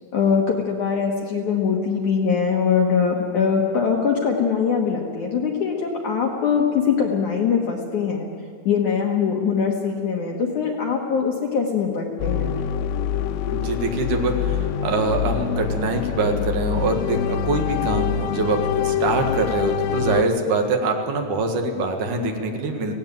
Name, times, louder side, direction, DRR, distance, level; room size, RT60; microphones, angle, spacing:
voice 1, 0.1-8.3 8.6-12.6, left 6 dB, 65° left, 0 dB, 2.0 m, -22 dB
sound 1, 12.2-20.2, left 8 dB, 85° left, 2.9 m, -25 dB
voice 2, 13.5-22.9, right 2 dB, 55° right, 4 dB, 2.7 m, -24 dB
17.5 x 17.0 x 9.3 m, 2.6 s
omnidirectional pair, 5.2 m